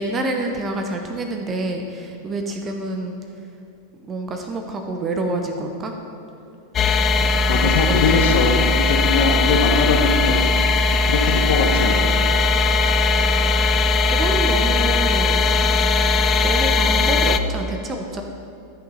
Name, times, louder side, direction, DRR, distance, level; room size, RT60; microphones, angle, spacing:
voice 1, 0.0-3.2 4.1-5.9 7.8-8.4 13.6-15.7 16.4-18.2, right 2 dB, 20° right, 4 dB, 0.8 m, -27 dB
sound 1, 6.7-17.4, left 3 dB, 25° left, 0.4 m, -18 dB
voice 2, 7.2-10.4 10.9-11.9, left 4 dB, 55° left, 2 dB, 0.9 m, -21 dB
13.5 x 6.1 x 4.2 m, 2.4 s
figure-of-eight pair, 90°, 0 cm